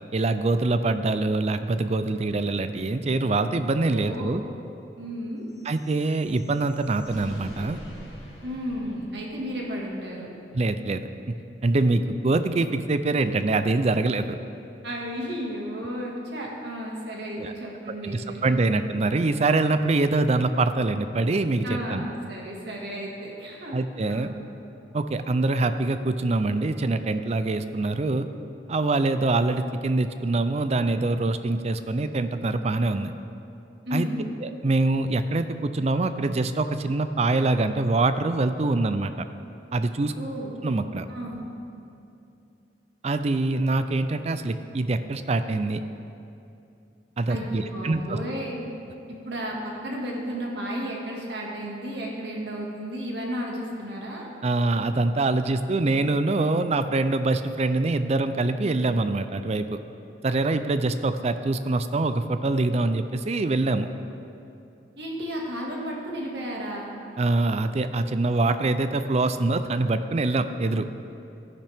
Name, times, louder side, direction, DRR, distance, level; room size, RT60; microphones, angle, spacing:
voice 1, 0.1-4.4 5.7-7.8 10.5-11.1 11.6-14.4 17.4-17.5 18.0-22.1 23.7-24.3 24.9-28.3 28.7-33.1 33.9-34.1 34.4-39.2 39.7-40.1 40.6-41.1 43.0-45.8 47.2-48.2 54.4-59.8 60.2-63.9 67.2-70.9, right 2 dB, 35° right, 10 dB, 0.4 m, -24 dB
voice 2, 3.8-4.3 5.0-5.5 8.4-10.3 14.8-18.8 21.6-23.8 24.0-24.4 33.9-34.3 40.2-40.5 41.1-41.5 47.3-48.7 49.3-54.3 65.0-67.0, equal, 70° right, -2 dB, 1.9 m, -33 dB
sound 1, 5.5-9.8, equal, 65° left, 2.1 m, -44 dB
13.5 x 10.0 x 3.5 m, 2.7 s
head